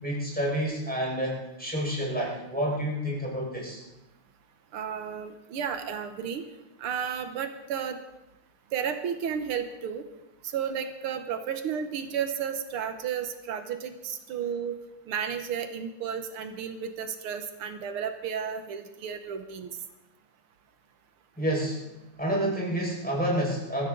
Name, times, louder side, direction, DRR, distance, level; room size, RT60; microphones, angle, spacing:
voice 1, 0.0-3.8 21.4-21.9 22.2-23.9, equal, 5° left, -4 dB, 5.3 m, -29 dB
voice 2, 4.7-6.5 6.8-8.0 8.7-10.0 10.4-14.8 15.1-19.7, right 7 dB, 85° right, 7 dB, 2.0 m, -33 dB
22.0 x 14.0 x 3.9 m, 0.96 s
omnidirectional pair, 2.3 m